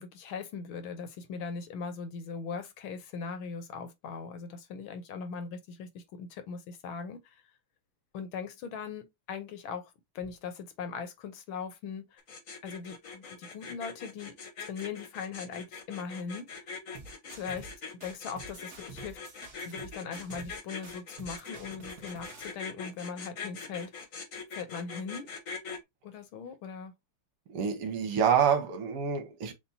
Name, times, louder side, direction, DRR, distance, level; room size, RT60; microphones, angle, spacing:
voice 1, 0.0-7.4 8.1-12.2 12.6-16.5 17.3-17.7 18.0-19.2 19.6-24.1 24.5-25.3 26.0-26.9, left 5 dB, 70° left, 1.7 m, -40 dB
sound 1, 12.2-25.8, left 5 dB, 45° left, 1.2 m, -42 dB
sound 2, 16.9-17.7 18.0-20.6 20.8-22.5, right 4 dB, 45° right, 1.7 m, -49 dB
voice 2, 27.5-29.5, right 7 dB, 90° right, 1.9 m, -27 dB
6.9 x 2.6 x 2.7 m
omnidirectional pair, 2.4 m